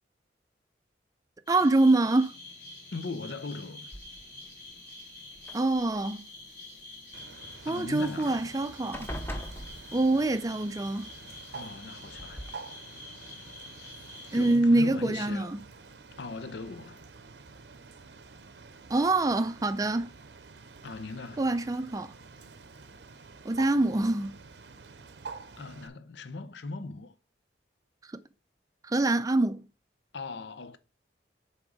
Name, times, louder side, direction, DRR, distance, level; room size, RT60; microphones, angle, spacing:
sound 1, 1.5-14.6, left 2 dB, 55° left, 2.9 m, -47 dB
voice 1, 1.5-2.3 5.5-6.2 7.7-9.1 9.9-11.1 14.3-15.6 18.9-20.1 21.4-22.1 23.4-24.3 28.8-29.6, right 2 dB, 20° right, 0.4 m, -25 dB
voice 2, 2.9-3.9 7.7-8.5 11.5-12.4 14.3-15.5 16.2-17.0 20.8-21.5 25.6-27.1 30.1-30.8, left 3 dB, 75° left, 0.6 m, -39 dB
sound 2, 3.9-4.5 5.3-6.2 8.0-8.1 8.4-8.6 8.9-10.4 11.5-11.6 12.2-12.5, equal, 10° left, 0.7 m, -40 dB
Bird, 7.1-25.9, right 4 dB, 70° right, 0.7 m, -48 dB
7.6 x 3.6 x 4.9 m
head